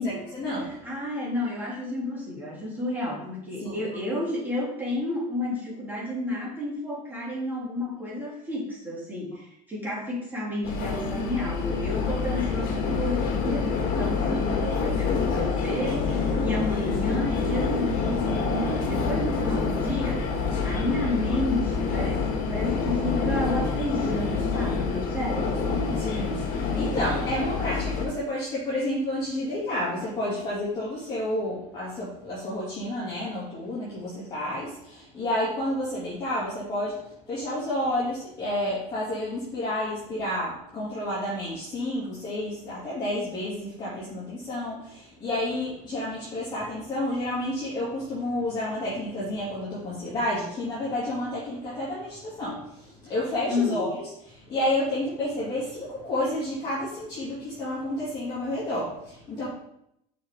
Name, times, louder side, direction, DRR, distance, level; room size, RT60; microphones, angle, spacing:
voice 1, 0.0-0.8 3.6-3.8 25.9-59.5, left 1 dB, 25° left, -10 dB, 2.8 m, -30 dB
voice 2, 0.6-20.2 20.6-25.8 53.5-53.9, left 1 dB, 10° right, -6 dB, 3.1 m, -31 dB
sound 1, 10.6-28.0, left 4 dB, 55° left, 1.9 m, -27 dB
6.6 x 6.2 x 3.8 m, 0.76 s
cardioid pair, 140°, 18 cm